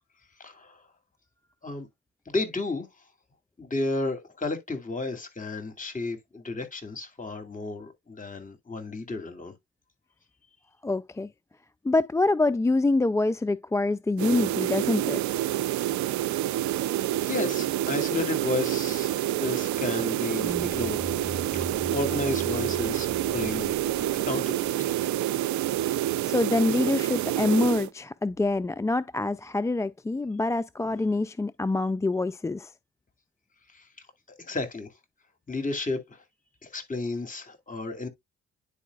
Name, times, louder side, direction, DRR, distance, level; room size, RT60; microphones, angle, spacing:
voice 1, 0.4-0.8 1.6-1.9 2.3-2.9 3.6-9.5 17.3-21.0 21.5-24.9 33.7-33.9 34.4-34.9 35.5-36.2 36.6-38.1, left 3 dB, 25° left, 2.4 m, -32 dB
voice 2, 10.8-11.3 11.8-15.4 26.3-32.7, left 2 dB, 10° left, 0.3 m, -26 dB
sound 1, 14.2-27.9, right 14 dB, 75° right, 0.6 m, -28 dB
sound 2, 20.4-24.7, right 1 dB, 10° right, 1.0 m, -40 dB
10.0 x 4.8 x 2.4 m
supercardioid pair, 55°, 29 cm